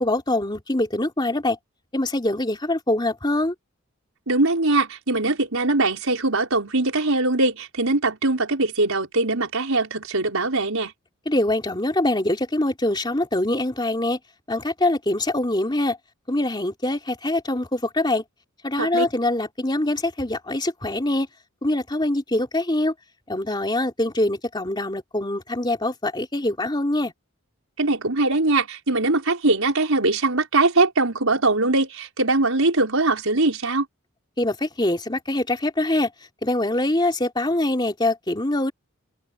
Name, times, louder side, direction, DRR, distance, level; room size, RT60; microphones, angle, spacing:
voice 1, 0.0-1.6 1.9-3.5 11.3-14.2 14.5-16.0 16.3-18.2 18.6-21.3 21.6-22.9 23.3-27.1 34.4-36.1 36.4-38.7, left 1 dB, 20° left, 3.1 m, -24 dB
voice 2, 4.3-10.9 18.8-19.1 27.8-33.8, right 2 dB, 85° right, 4.9 m, -21 dB
head